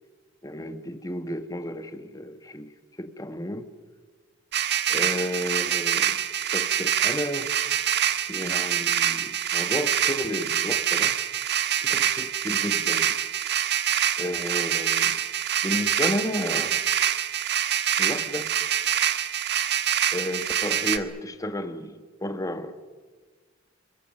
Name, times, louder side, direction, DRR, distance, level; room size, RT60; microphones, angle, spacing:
voice 1, 0.4-2.7 3.0-3.7 4.9-6.2 6.5-7.5 8.3-11.2 11.8-13.2 14.2-15.2 15.6-16.8 18.0-18.5 20.1-22.7, left 1 dB, 20° left, 1.4 m, -32 dB
sound 1, 4.5-21.0, right 10 dB, 55° right, 1.3 m, -25 dB
27.5 x 23.5 x 6.4 m
head